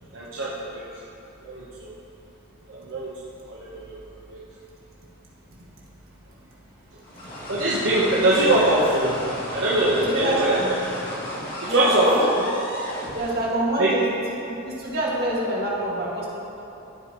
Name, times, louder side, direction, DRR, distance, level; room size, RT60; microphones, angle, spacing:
voice 1, 0.1-0.8 1.4-1.9 2.7-3.1 3.5-4.0 4.3-4.4 7.5-9.2 9.5-10.8 11.6-12.3 13.8-13.9, right 1 dB, 65° right, -6 dB, 1.1 m, -22 dB
sound 1, 7.0-13.6, equal, 45° left, 2.3 m, -34 dB
voice 2, 10.0-10.7 11.7-12.4 13.1-14.1 14.5-16.3, right 1 dB, 45° right, -5 dB, 2.0 m, -25 dB
14.5 x 8.3 x 3.1 m, 2.9 s
head